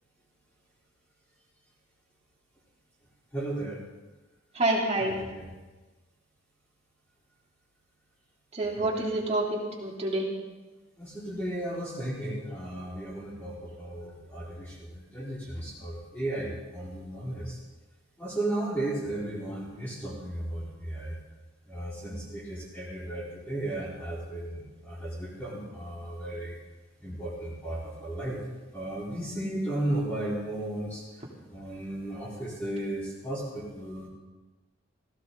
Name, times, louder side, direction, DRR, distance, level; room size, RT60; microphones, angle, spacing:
voice 1, 3.3-3.8 4.9-5.5 8.7-9.0 11.0-17.6 18.2-21.1 21.7-26.6 27.0-28.4 28.7-31.0 31.5-34.1, right 1 dB, 10° left, -11 dB, 4.9 m, -35 dB
voice 2, 4.5-5.1 8.5-10.2, right 2 dB, 35° right, -3 dB, 3.3 m, -27 dB
18.0 x 16.5 x 4.1 m, 1.2 s
head